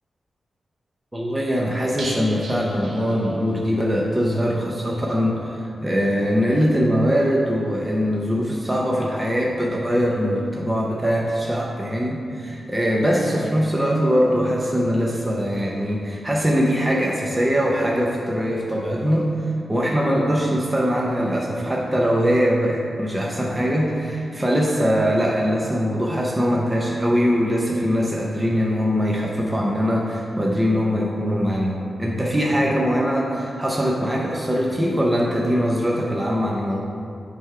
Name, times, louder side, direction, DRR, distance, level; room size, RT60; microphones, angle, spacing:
voice 1, 1.1-19.3 19.7-36.8, equal, 10° right, -2 dB, 0.6 m, -22 dB
sound 1, 2.0-3.8 4.0-4.1 4.5-4.6, right 1 dB, 65° right, 1.2 m, -37 dB
9.4 x 3.4 x 4.8 m, 2.4 s
wide cardioid pair, 160°, 0 cm